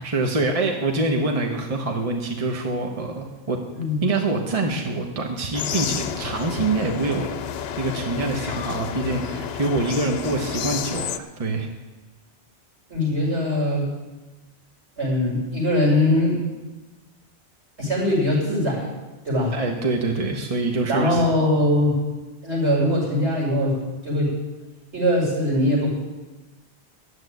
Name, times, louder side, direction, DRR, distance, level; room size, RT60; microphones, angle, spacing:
voice 1, 0.0-3.6 4.0-7.3 7.8-11.7 19.5-21.2, right 3 dB, 35° right, 2 dB, 1.2 m, -25 dB
sound 1, 5.5-11.2, left 8 dB, 65° left, 0.8 m, -30 dB
voice 2, 12.9-13.9 15.0-16.4 17.8-18.9 19.2-19.6 20.9-22.0 22.4-23.7 24.0-24.4 24.9-25.9, left 1 dB, 75° right, -4 dB, 6.5 m, -21 dB
12.0 x 8.1 x 9.3 m, 1.2 s
omnidirectional pair, 1.1 m